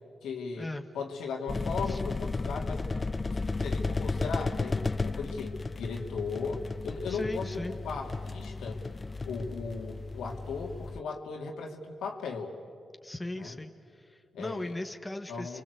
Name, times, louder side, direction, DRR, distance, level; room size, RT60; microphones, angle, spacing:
voice 1, 0.2-0.7 0.9-2.9 3.2-8.8 9.2-12.5 13.3-13.6 14.3-14.7 15.3-15.6, left 4 dB, 90° left, 1 dB, 2.8 m, -37 dB
sound 1, 1.5-11.0, left 3 dB, 35° left, 0.6 m, -34 dB
voice 2, 7.1-7.8 13.0-15.6, left 1 dB, 15° left, 6 dB, 1.7 m, -38 dB
29.5 x 24.0 x 8.3 m, 2.3 s
cardioid pair, 60°, 0 cm